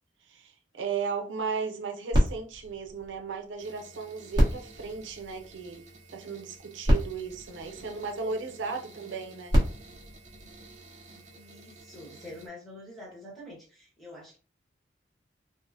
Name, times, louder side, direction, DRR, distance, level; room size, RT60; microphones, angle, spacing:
voice 1, 0.2-5.8 6.1-9.6, right 5 dB, 85° right, 0.6 m, -35 dB
sound 1, 2.1-3.8 4.3-5.9 6.6-6.7 6.8-8.4 9.2-11.1 11.8-11.9, equal, 25° right, 1.1 m, -28 dB
sound 2, 3.6-12.5, right 2 dB, 40° right, 0.6 m, -52 dB
voice 2, 11.3-14.4, left 1 dB, ahead, 1.1 m, -46 dB
3.5 x 2.1 x 2.6 m
head